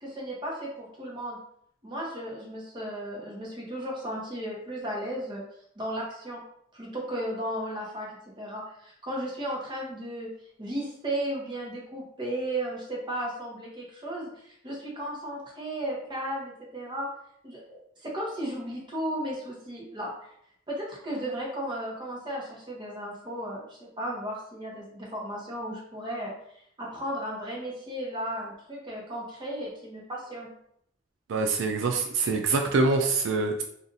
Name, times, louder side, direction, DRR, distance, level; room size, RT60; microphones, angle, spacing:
voice 1, 0.0-1.4 1.8-5.4 5.8-6.4 6.7-8.1 8.4-10.3 10.6-17.1 17.4-20.3 20.7-30.5, right 1 dB, 25° right, -3 dB, 0.9 m, -35 dB
voice 2, 31.3-33.6, right 3 dB, 70° right, 4 dB, 0.3 m, -25 dB
2.6 x 2.4 x 3.9 m, 0.71 s
head